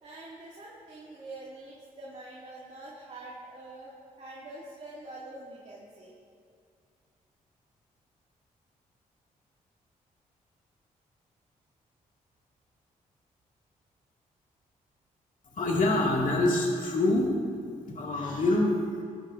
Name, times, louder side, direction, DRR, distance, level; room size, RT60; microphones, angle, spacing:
voice 1, 0.0-6.2, right 2 dB, 50° right, -6 dB, 2.3 m, -45 dB
voice 2, 15.5-17.3 17.9-19.0, left 2 dB, 60° left, -2 dB, 2.2 m, -25 dB
19.5 x 10.5 x 2.6 m, 2.2 s
supercardioid pair, 60°, 15 cm